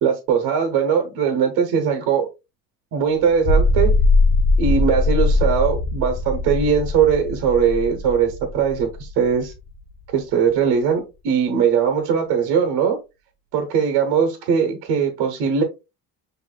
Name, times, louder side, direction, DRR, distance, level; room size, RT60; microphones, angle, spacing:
voice 1, 0.0-2.3 2.9-3.9 4.6-9.5 10.1-13.0 13.5-15.6, right 7 dB, 70° right, 1.1 m, -20 dB
sound 1, 3.3-9.8, left 2 dB, 55° left, 0.7 m, -20 dB
6.2 x 2.9 x 2.3 m
cardioid pair, 135°, 39 cm